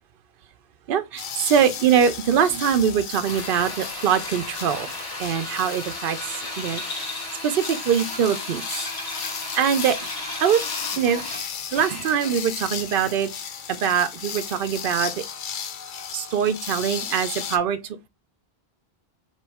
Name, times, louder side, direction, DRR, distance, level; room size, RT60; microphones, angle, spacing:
voice 1, 0.9-4.9 5.2-7.1 7.4-8.6 9.1-10.0 10.4-10.6 11.0-13.3 13.7-15.2 16.1-18.1, right 8 dB, 65° right, 0.8 m, -23 dB
sound 1, 1.2-17.6, left 7 dB, 60° left, 0.7 m, -35 dB
Drill, 3.2-12.5, left 1 dB, 75° left, 2.3 m, -35 dB
4.2 x 3.0 x 3.4 m
omnidirectional pair, 1.1 m